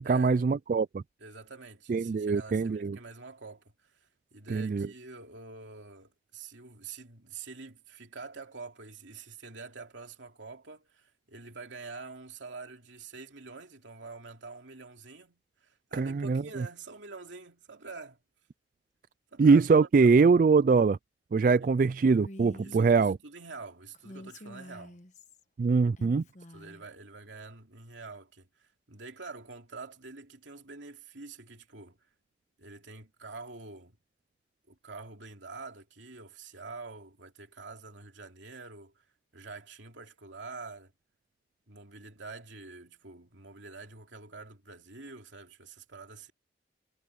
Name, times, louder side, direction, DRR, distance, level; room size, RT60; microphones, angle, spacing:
voice 1, 0.0-1.0 1.9-3.0 4.5-4.9 15.9-16.7 19.4-21.0 21.3-23.2 25.6-26.2, right 4 dB, 45° right, 0.3 m, -23 dB
voice 2, 1.2-18.2 19.3-20.3 21.6-21.7 22.6-25.0 26.5-32.1 32.6-34.0 34.7-39.0 39.3-40.9 41.7-46.3, right 4 dB, 85° right, 2.9 m, -46 dB
Female speech woman speaking, 22.2-22.9 23.9-25.4 26.0-26.8, left 1 dB, 40° left, 1.2 m, -48 dB
head